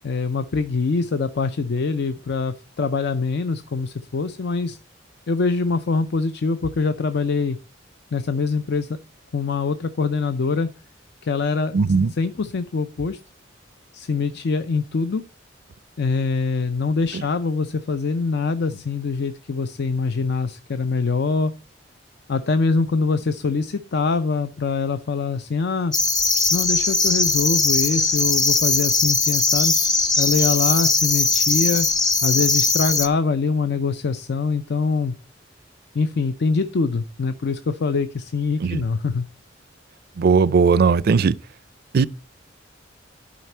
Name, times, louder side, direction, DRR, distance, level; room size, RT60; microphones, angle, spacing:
voice 1, 0.0-4.8 5.3-7.6 8.1-8.9 9.3-10.7 11.2-11.8 12.2-13.2 13.9-15.2 16.0-21.5 22.3-25.9 26.5-29.7 30.2-31.9 32.2-35.2 35.9-39.3, left 4 dB, 60° left, 0.5 m, -24 dB
voice 2, 11.7-12.1 38.6-38.8 40.2-41.4 41.9-42.1, right 5 dB, 55° right, 0.4 m, -17 dB
sound 1, 25.9-33.1, left 3 dB, 20° left, 1.0 m, -20 dB
11.5 x 5.0 x 4.4 m
head